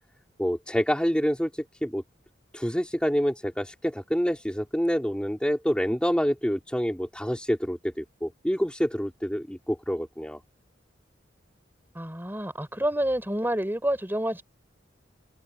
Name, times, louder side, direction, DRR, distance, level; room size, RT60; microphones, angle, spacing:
voice 1, 0.4-2.0 2.5-10.4, equal, 5° left, 3.2 m, -27 dB
voice 2, 11.9-14.4, right 1 dB, 10° right, 4.5 m, -28 dB
head